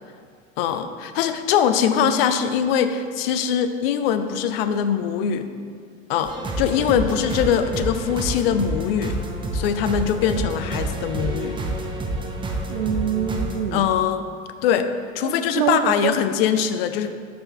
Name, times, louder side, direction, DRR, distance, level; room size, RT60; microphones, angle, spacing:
voice 1, 0.6-5.5 6.1-9.2 9.5-11.6 13.7-14.3 14.6-14.9 15.1-17.1, left 8 dB, 50° left, 10 dB, 0.5 m, -22 dB
sound 1, 6.2-13.6, right 2 dB, 15° right, 0.7 m, -28 dB
voice 2, 12.7-13.9 15.2-16.2, right 8 dB, 70° right, 4 dB, 0.5 m, -25 dB
6.7 x 5.5 x 3.4 m, 2.1 s
figure-of-eight pair, 80°, 39 cm